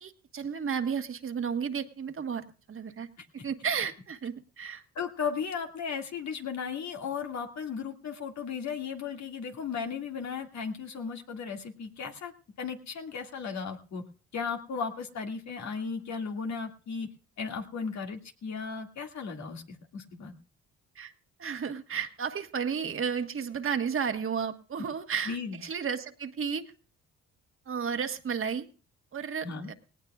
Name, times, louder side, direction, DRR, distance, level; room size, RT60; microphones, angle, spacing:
voice 1, 0.0-3.1 3.4-4.8 20.9-21.1 21.4-26.7 27.7-28.7 29.1-29.7, right 6 dB, 45° right, 7 dB, 1.5 m, -33 dB
voice 2, 5.0-12.3 12.6-14.0 14.3-17.1 17.4-20.4 25.3-25.6 29.4-29.7, left 6 dB, 65° left, 3 dB, 2.2 m, -35 dB
18.5 x 18.0 x 2.4 m, 0.37 s
cardioid pair, 90°, 30 cm